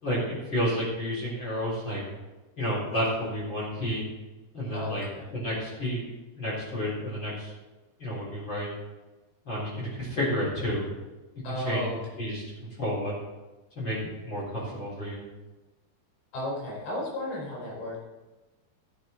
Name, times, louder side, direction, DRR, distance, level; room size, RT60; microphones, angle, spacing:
voice 1, 0.0-2.0 2.6-4.0 4.5-5.0 5.3-7.5 8.0-8.7 9.5-10.9 11.6-11.8 12.2-13.2 13.8-14.0 14.2-15.2, equal, 25° left, -7 dB, 4.0 m, -30 dB
voice 2, 4.7-5.3 11.4-12.0 16.3-18.0, left 1 dB, 80° left, -4 dB, 7.0 m, -34 dB
15.0 x 8.2 x 4.3 m, 1.1 s
omnidirectional pair, 5.1 m